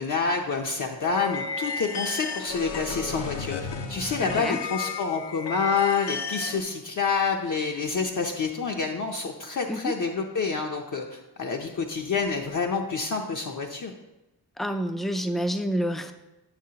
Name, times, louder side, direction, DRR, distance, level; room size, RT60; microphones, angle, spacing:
voice 1, 0.0-13.9, left 5 dB, 50° left, 1 dB, 0.6 m, -28 dB
sound 1, 1.0-6.6, left 4 dB, 85° left, 0.8 m, -33 dB
voice 2, 4.2-4.6 9.7-10.0 14.6-16.1, equal, ahead, 7 dB, 0.3 m, -28 dB
9.0 x 6.7 x 2.8 m, 0.99 s
wide cardioid pair, 155°, 41 cm